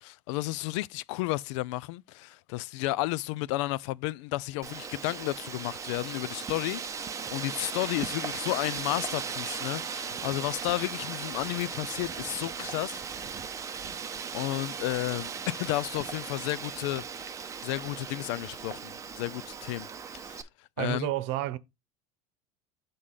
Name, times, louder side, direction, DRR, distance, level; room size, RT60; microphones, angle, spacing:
voice 1, 0.0-13.0 14.3-17.4 17.6-19.9 20.2-20.4 20.8-21.1, left 18 dB, 85° left, 0.4 m, -32 dB
Wind, 4.6-20.4, right 6 dB, 20° right, 0.6 m, -37 dB
voice 2, 20.8-21.6, right 15 dB, 75° right, 0.9 m, -30 dB
6.5 x 3.7 x 5.6 m
cardioid pair, 140°, 15 cm